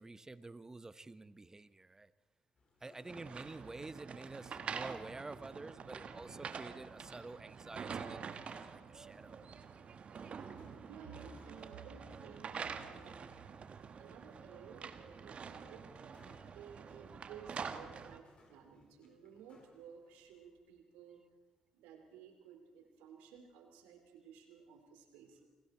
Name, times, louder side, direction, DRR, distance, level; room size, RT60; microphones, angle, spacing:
voice 1, 0.0-2.1 2.8-9.3, right 2 dB, 20° right, 15 dB, 1.1 m, -49 dB
sound 1, 2.6-20.4, left 3 dB, 45° left, 4.8 m, -69 dB
sound 2, 3.1-18.2, right 6 dB, 50° right, 1.5 m, -47 dB
voice 2, 10.9-13.3 13.8-16.2 16.5-21.2 21.7-25.4, right 6 dB, 75° right, 5 dB, 3.0 m, -55 dB
29.0 x 20.5 x 4.4 m, 1.2 s
hypercardioid pair, 45°, 3 cm